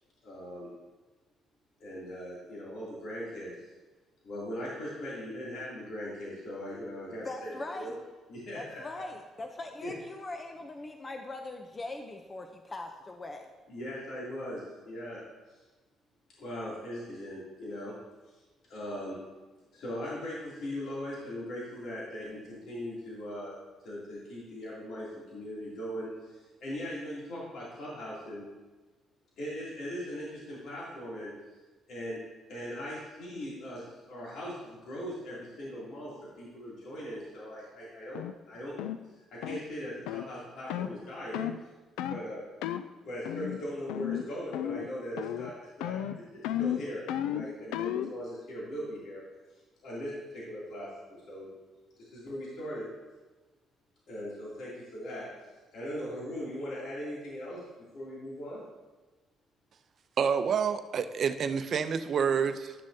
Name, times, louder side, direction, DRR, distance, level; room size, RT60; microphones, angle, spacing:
voice 1, 0.2-0.7 1.8-3.5 4.2-7.9 8.3-9.0 9.8-9.9 13.7-15.2 16.4-17.9 18.3-18.4 18.7-19.2 19.7-23.6 23.8-28.4 29.4-31.3 31.9-32.2 32.5-38.2 38.5-38.7 39.3-41.5 42.1-42.4 43.0-49.2 49.8-51.5 52.0-52.9 54.1-55.3 55.7-57.6 57.9-58.7, equal, 70° left, -7 dB, 2.8 m, -39 dB
voice 2, 7.2-7.9 8.5-13.5, left 2 dB, 30° left, 4 dB, 0.7 m, -41 dB
sound 1, 38.1-38.3 38.8-39.0 39.4-39.6 40.1-40.3 40.7-40.9 41.3-41.6 42.0-42.2 42.6-42.9 43.2-43.6 43.9-44.3 44.5-44.9 45.2-45.5 45.8-48.1, left 11 dB, 90° left, 0.3 m, -33 dB
voice 3, 60.2-62.7, right 6 dB, 55° right, 10 dB, 0.6 m, -28 dB
11.5 x 6.3 x 2.8 m, 1.2 s
supercardioid pair, 75°, 0 cm